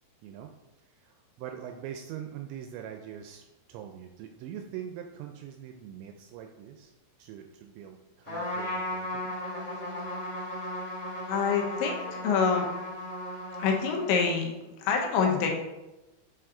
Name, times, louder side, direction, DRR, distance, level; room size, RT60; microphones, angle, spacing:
voice 1, 0.2-0.5 0.8-6.9 7.2-9.3, right 9 dB, 85° right, 4 dB, 2.6 m, -43 dB
Trumpet, 8.3-14.4, left 1 dB, 40° left, 2.7 m, -36 dB
voice 2, 11.3-12.7 13.6-15.5, left 5 dB, 75° left, 1 dB, 3.1 m, -26 dB
8.0 x 4.7 x 3.8 m, 1.0 s
omnidirectional pair, 5.6 m